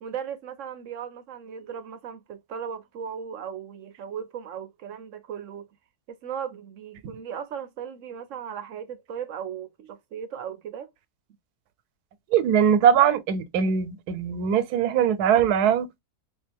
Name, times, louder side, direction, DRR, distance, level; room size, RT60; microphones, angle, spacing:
voice 1, 0.0-5.7 6.1-10.9, right 8 dB, 65° right, 0.8 m, -37 dB
voice 2, 12.3-16.0, right 8 dB, 85° right, 1.1 m, -21 dB
3.4 x 2.6 x 3.3 m
omnidirectional pair, 1.6 m